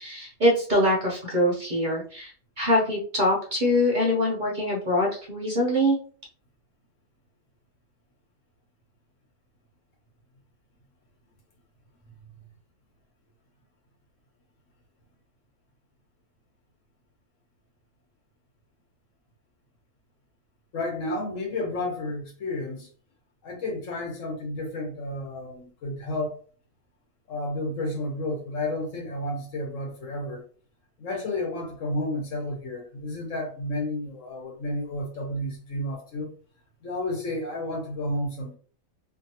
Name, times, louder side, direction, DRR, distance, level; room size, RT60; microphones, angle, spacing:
voice 1, 0.0-6.0, left 1 dB, 45° right, -2 dB, 0.7 m, -24 dB
voice 2, 20.7-22.9 23.4-26.4 27.3-30.4 31.0-36.3 36.8-38.6, left 1 dB, 70° left, 1 dB, 1.3 m, -31 dB
2.7 x 2.6 x 2.7 m, 0.42 s
omnidirectional pair, 1.4 m